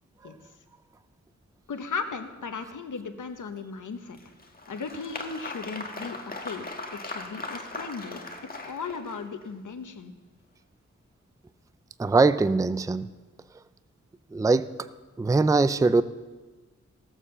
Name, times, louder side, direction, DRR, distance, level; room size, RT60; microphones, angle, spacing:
voice 1, 1.7-4.2 4.7-8.2 8.6-10.1, left 5 dB, 90° left, 8 dB, 1.1 m, -36 dB
Applause, 4.1-9.5, left 2 dB, 30° left, 1.5 m, -39 dB
voice 2, 12.0-13.1 14.3-14.7 15.2-16.0, right 3 dB, 10° right, 14 dB, 0.4 m, -21 dB
16.0 x 7.3 x 6.8 m, 1.3 s
wide cardioid pair, 85°, 30 cm